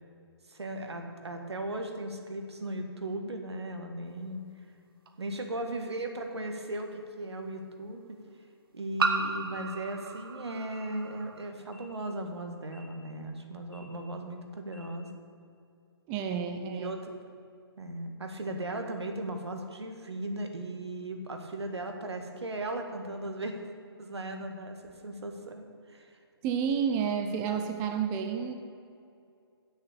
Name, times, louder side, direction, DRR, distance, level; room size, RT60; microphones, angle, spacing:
voice 1, 0.5-4.4 5.2-8.2 8.7-15.1 16.5-17.1 17.8-23.6 24.0-26.2, right 1 dB, 85° right, 4 dB, 1.6 m, -37 dB
sound 1, 5.1-5.2 6.8-6.9 9.0-11.5, right 4 dB, 60° right, 1.1 m, -33 dB
sound 2, 9.6-9.8 10.6-10.8 11.6-11.8 12.6-12.8 13.6-13.8 14.6-14.8, left 4 dB, 15° left, 2.4 m, -59 dB
voice 2, 16.1-16.9 26.4-28.5, right 7 dB, 20° right, 5 dB, 0.6 m, -30 dB
8.2 x 6.6 x 8.3 m, 2.5 s
hypercardioid pair, 145°, 14 cm